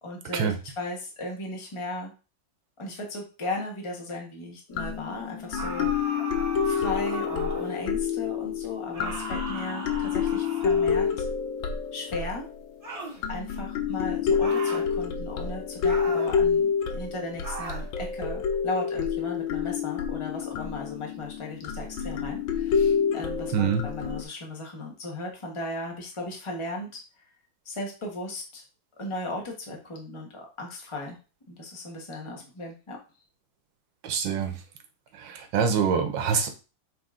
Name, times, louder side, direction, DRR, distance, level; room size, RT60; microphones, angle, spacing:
voice 1, 0.0-2.1 2.8-5.9 6.6-11.2 11.9-12.4 13.3-27.2 27.6-28.6 29.0-31.2 31.5-33.0, left 2 dB, 15° left, 0 dB, 1.3 m, -36 dB
sound 1, 4.7-12.8 13.2-24.2, left 7 dB, 90° left, 1.6 m, -28 dB
sound 2, 5.5-7.8 8.9-11.2 12.8-13.2 14.4-14.9 15.8-16.4 17.4-17.9, right 2 dB, 20° right, 1.1 m, -37 dB
voice 2, 23.5-23.8 34.0-34.5 35.2-36.5, right 7 dB, 80° right, 7 dB, 1.7 m, -25 dB
7.6 x 3.4 x 3.7 m, 0.33 s
omnidirectional pair, 2.1 m